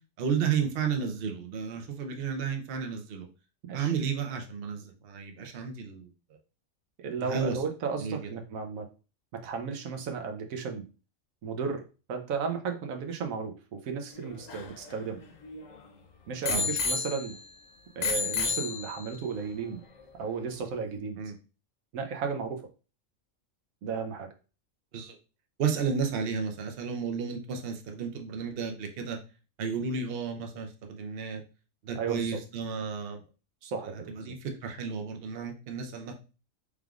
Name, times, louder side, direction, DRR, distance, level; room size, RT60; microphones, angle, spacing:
voice 1, 0.2-3.3 3.7-6.1 7.2-7.6 8.0-8.3 16.5-16.7 21.2-21.3 24.9-25.2 25.6-29.2 29.6-31.4 31.8-33.2 33.8-36.2, right 6 dB, 55° right, 4 dB, 0.8 m, -32 dB
voice 2, 7.0-8.9 9.4-10.8 11.4-11.8 12.1-15.2 16.3-17.3 18.0-19.8 20.2-21.2 21.9-22.6 23.8-24.3 32.0-32.4 33.6-34.3, right 5 dB, 90° right, 4 dB, 1.1 m, -34 dB
Bicycle bell, 14.2-15.8 16.5-17.6 18.0-19.3 20.0-20.1, left 4 dB, 75° left, 1.1 m, -32 dB
4.7 x 3.5 x 2.4 m, 0.33 s
omnidirectional pair, 1.4 m